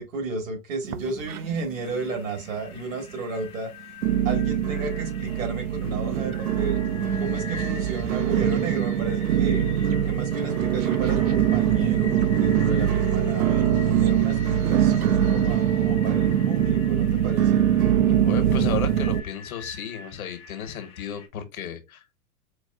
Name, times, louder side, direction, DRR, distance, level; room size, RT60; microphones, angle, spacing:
voice 1, 0.0-3.7 4.2-6.8 7.2-9.7 10.1-13.7 14.0-17.6, right 3 dB, 65° right, 1.8 m, -32 dB
sound 1, 0.8-1.8 2.1-2.7 3.2-3.3 4.0-19.2, right 9 dB, 85° right, 0.5 m, -23 dB
sound 2, 1.7-21.3, left 6 dB, 15° left, 0.4 m, -45 dB
sound 3, 7.1-15.9, right 10 dB, 45° right, 0.9 m, -44 dB
voice 2, 18.3-22.0, left 8 dB, 70° left, 1.0 m, -33 dB
4.5 x 2.4 x 2.3 m
hypercardioid pair, 110°, 44 cm